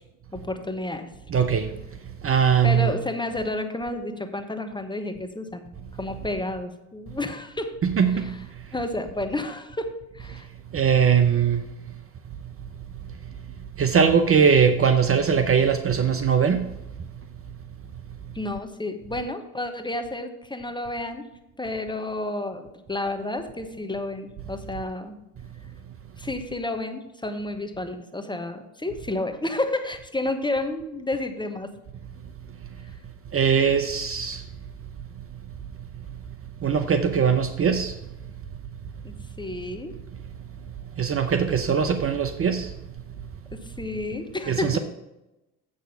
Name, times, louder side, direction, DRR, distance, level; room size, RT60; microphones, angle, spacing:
voice 1, 0.3-1.1 2.6-5.7 6.0-7.8 8.1-8.4 8.7-10.5 18.3-21.3 21.6-25.2 26.2-31.7 39.0-39.9 43.5-44.8, left 2 dB, 10° left, 6 dB, 1.2 m, -31 dB
voice 2, 1.3-1.7 2.2-2.9 7.8-8.4 10.7-11.7 13.8-16.7 33.3-34.4 36.6-37.9 41.0-42.7 44.5-44.8, right 7 dB, 30° right, 9 dB, 0.8 m, -21 dB
8.0 x 6.4 x 5.6 m, 0.95 s
hypercardioid pair, 65°, 44 cm